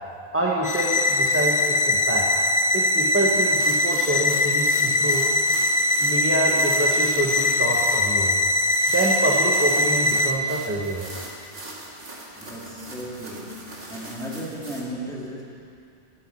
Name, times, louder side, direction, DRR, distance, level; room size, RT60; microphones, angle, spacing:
voice 1, 0.3-2.3 2.7-5.3 6.0-8.3 8.9-11.0, right 1 dB, 10° right, -4 dB, 1.4 m, -26 dB
sound 1, 0.6-10.3, left 1 dB, 35° left, 0.6 m, -21 dB
sound 2, 3.5-14.8, right 1 dB, 65° right, 2.4 m, -41 dB
voice 2, 12.3-15.4, equal, 5° left, -3 dB, 2.2 m, -35 dB
13.5 x 10.5 x 8.6 m, 2.4 s
omnidirectional pair, 1.1 m